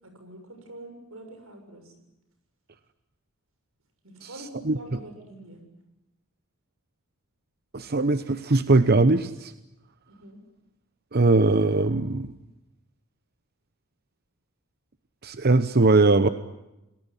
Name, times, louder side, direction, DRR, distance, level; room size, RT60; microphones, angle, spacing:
voice 1, 0.0-1.9 4.0-5.6 10.1-10.4, right 1 dB, 85° right, 7 dB, 7.1 m, -45 dB
voice 2, 7.7-9.5 11.1-12.3 15.2-16.3, right 3 dB, 50° right, 11 dB, 0.9 m, -20 dB
28.5 x 20.0 x 10.0 m, 0.96 s
head